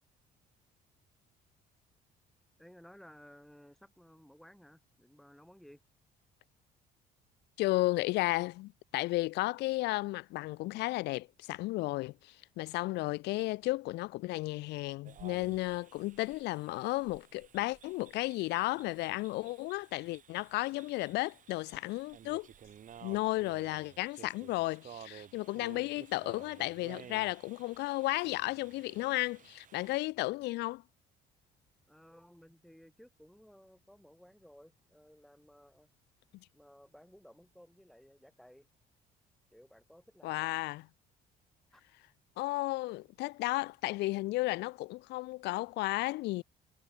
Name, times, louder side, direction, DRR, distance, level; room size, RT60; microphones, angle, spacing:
voice 1, 2.6-5.8 31.9-35.9 36.5-38.7 39.5-40.6 41.7-41.8, equal, ahead, 6.4 m, -57 dB
voice 2, 7.6-22.5 23.0-30.8 40.2-40.9 42.4-46.4, left 20 dB, 85° left, 1.4 m, -33 dB
sound 1, 15.1-30.0, right 9 dB, 50° right, 6.9 m, -54 dB
cardioid pair, 110°, 17 cm